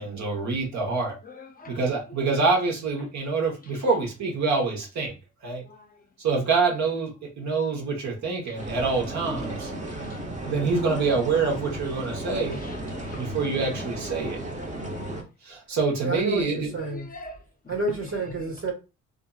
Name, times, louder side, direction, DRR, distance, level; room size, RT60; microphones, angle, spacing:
voice 1, 0.0-1.2 1.7-5.1 5.4-5.6 6.2-9.7 10.4-12.6 13.1-14.4 15.4-16.7, right 4 dB, 65° right, 1.1 m, -26 dB
voice 2, 1.2-1.8 5.6-6.0 8.5-8.6 9.9-10.5 12.5-13.3 14.2-14.3 16.8-17.8, left 3 dB, 30° left, 0.5 m, -45 dB
sound 1, 8.6-15.2, right 1 dB, 25° right, 0.7 m, -34 dB
voice 3, 16.0-17.1 17.7-18.7, right 2 dB, 45° right, 1.4 m, -29 dB
2.7 x 2.5 x 2.3 m
cardioid pair, 90°, 30 cm